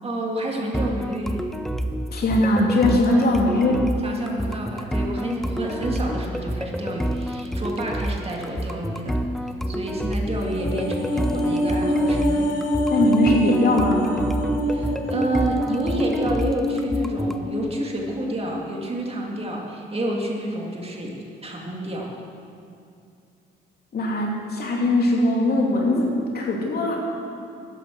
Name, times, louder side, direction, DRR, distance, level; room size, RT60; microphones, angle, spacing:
voice 1, 0.0-1.4 2.3-2.6 4.0-9.2 9.7-12.5 14.6-21.1 21.4-22.1, right 1 dB, 30° right, -1 dB, 2.3 m, -29 dB
sound 1, 0.7-17.4, right 1 dB, ahead, 0.7 m, -28 dB
voice 2, 2.1-3.9 12.9-14.0 23.9-27.0, left 1 dB, 55° left, -1 dB, 2.9 m, -20 dB
sound 2, 10.3-18.7 19.0-19.2, equal, 80° left, 2.7 m, -25 dB
13.5 x 10.0 x 6.1 m, 2.5 s
cardioid pair, 90°, 20 cm